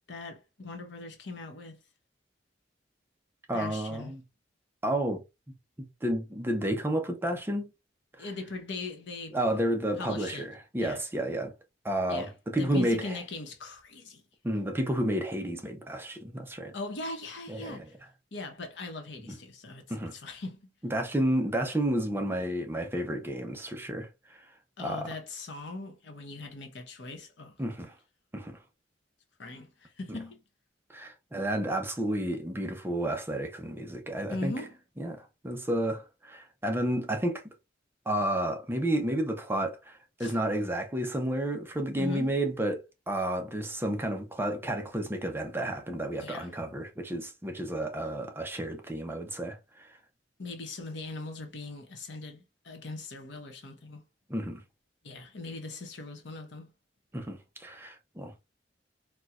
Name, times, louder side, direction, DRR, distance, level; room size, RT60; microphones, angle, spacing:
voice 1, 0.1-1.8 3.5-4.1 8.2-9.4 10.0-10.5 10.8-11.0 12.1-14.2 16.7-17.9 18.3-20.7 24.8-27.6 29.4-30.4 34.3-34.8 40.2-40.3 42.0-42.3 46.2-46.5 50.4-54.0 55.0-56.7, left 2 dB, 70° left, 0.9 m, -40 dB
voice 2, 3.5-4.2 4.8-5.2 5.8-7.7 8.2-8.3 9.3-11.5 11.8-13.2 14.4-16.7 17.5-17.9 19.3-19.4 19.9-20.2 20.8-24.4 24.8-25.1 27.6-27.9 28.3-28.6 30.9-34.5 35.0-37.4 38.1-49.9 54.3-54.6 57.1-58.4, right 1 dB, 10° right, 0.6 m, -31 dB
4.3 x 2.3 x 2.3 m
head